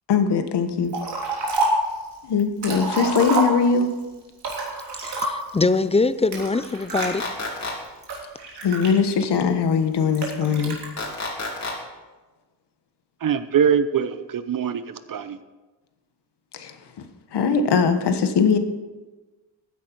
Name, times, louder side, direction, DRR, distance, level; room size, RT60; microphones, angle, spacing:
voice 1, 0.1-0.9 2.2-3.9 8.6-10.8 16.5-18.6, left 5 dB, 65° left, 1.4 m, -21 dB
Liquid, 0.9-1.9 2.4-3.9 4.4-5.6 6.3-7.1 7.7-9.4 10.1-10.9, right 2 dB, 65° right, 3.3 m, -27 dB
voice 2, 5.0-7.2, left 3 dB, 15° left, 0.4 m, -22 dB
sound 1, 7.0-7.7 11.0-11.7, left 3 dB, 35° left, 3.6 m, -29 dB
voice 3, 13.2-15.4, right 7 dB, 50° right, 0.8 m, -23 dB
15.0 x 9.3 x 4.6 m
cardioid pair, 95°, 44 cm